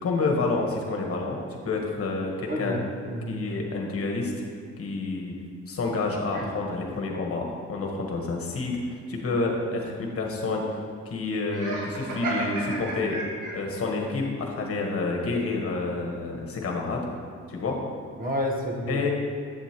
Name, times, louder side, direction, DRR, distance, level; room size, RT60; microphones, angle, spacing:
voice 1, 0.0-2.7 3.3-4.3 4.8-5.4 5.7-8.8 9.1-10.6 11.0-13.2 13.5-17.1 17.5-17.8 18.9-19.1, left 3 dB, 50° left, 0 dB, 1.4 m, -28 dB
voice 2, 2.5-3.3 6.3-6.4 18.2-19.1, equal, 30° right, -1 dB, 1.2 m, -30 dB
Laughter, 11.5-13.8, right 3 dB, 90° right, 1.6 m, -32 dB
8.3 x 7.0 x 3.0 m, 2.2 s
cardioid pair, 90°, 30 cm